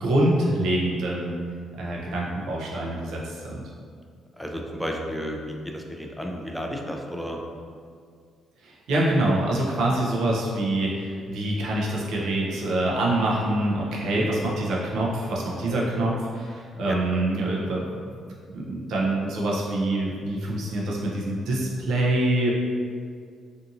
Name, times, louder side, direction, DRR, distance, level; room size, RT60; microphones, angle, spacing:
voice 1, 0.0-1.3 1.8-3.6 8.6-17.8 18.5-22.5, right 1 dB, 80° right, -4 dB, 0.6 m, -25 dB
voice 2, 4.4-7.4 14.1-14.3 16.9-17.0, equal, ahead, 1 dB, 0.3 m, -32 dB
2.7 x 2.6 x 2.5 m, 2.1 s
cardioid pair, 90°, 0 cm